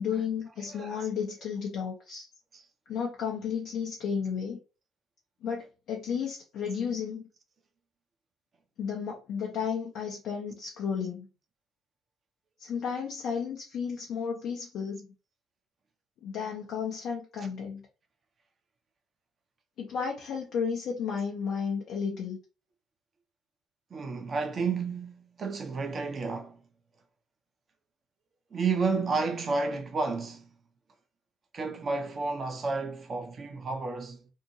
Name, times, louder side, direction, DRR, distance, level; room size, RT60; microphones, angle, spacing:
voice 1, 0.0-2.3 2.9-4.6 5.4-7.2 8.8-11.3 12.6-15.1 16.2-17.9 19.8-22.4, left 6 dB, 55° left, 0.6 m, -33 dB
voice 2, 0.7-1.1 2.5-2.6 23.9-26.6 28.5-30.5 31.5-34.3, right 4 dB, 35° right, 0.7 m, -31 dB
2.7 x 2.6 x 2.7 m
figure-of-eight pair, 50°, 0 cm